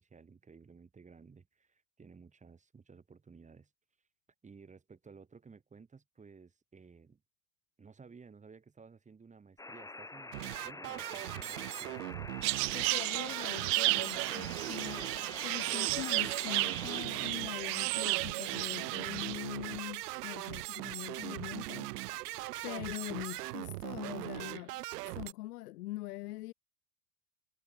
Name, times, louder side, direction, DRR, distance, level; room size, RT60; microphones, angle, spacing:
voice 1, 0.0-3.7 4.4-7.2 7.8-12.1, right 5 dB, 15° right, 6.7 m, -56 dB
sound 1, 9.6-17.1, left 2 dB, 5° left, 3.7 m, -47 dB
sound 2, 10.3-25.3, right 18 dB, 85° right, 1.7 m, -40 dB
sound 3, 12.4-19.4, right 33 dB, 55° right, 0.5 m, -33 dB
voice 2, 12.7-22.3 22.6-24.8 25.1-26.5, left 18 dB, 80° left, 5.0 m, -43 dB
supercardioid pair, 140°, 45 cm